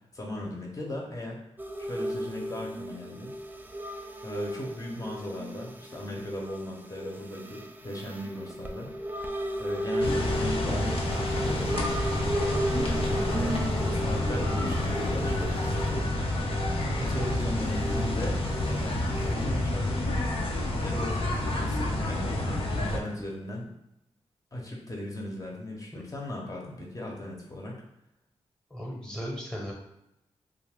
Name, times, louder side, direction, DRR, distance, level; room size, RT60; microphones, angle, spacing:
voice 1, 0.1-1.4 1.8-3.3 4.2-8.9 9.6-11.7 12.7-16.1 17.0-20.0 20.8-23.7 24.5-27.8, left 1 dB, 30° left, -1 dB, 0.9 m, -37 dB
sound 1, 1.6-19.3, right 1 dB, 15° right, 0.3 m, -35 dB
sound 2, 10.0-23.0, left 1 dB, 55° left, 0.6 m, -29 dB
voice 2, 28.7-29.7, equal, 5° left, -1 dB, 1.0 m, -36 dB
2.4 x 2.1 x 3.5 m, 0.86 s
cardioid pair, 50°, 11 cm